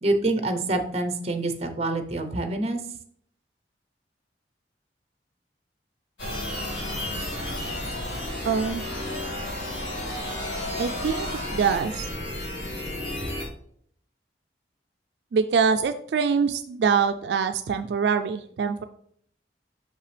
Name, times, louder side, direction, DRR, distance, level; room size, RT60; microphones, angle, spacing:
voice 1, 0.0-2.8, right 2 dB, 35° right, 7 dB, 0.7 m, -26 dB
sound 1, 6.2-13.5, left 1 dB, 85° left, 2.2 m, -32 dB
voice 2, 8.4-8.8 10.8-12.1 15.3-18.8, right 6 dB, 70° right, 8 dB, 0.3 m, -24 dB
5.8 x 5.6 x 3.3 m, 0.63 s
head